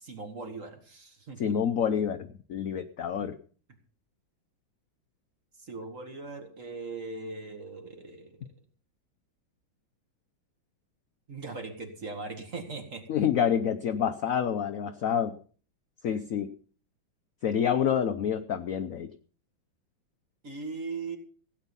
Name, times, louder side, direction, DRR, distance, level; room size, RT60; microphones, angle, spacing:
voice 1, 0.0-1.5 5.6-8.5 11.3-13.0 16.1-16.2 20.4-21.2, right 3 dB, 40° right, 5 dB, 2.3 m, -39 dB
voice 2, 1.4-3.4 13.1-15.4 16.0-16.5 17.4-19.1, left 8 dB, 60° left, 8 dB, 0.8 m, -28 dB
16.5 x 9.2 x 5.4 m, 0.42 s
omnidirectional pair, 2.2 m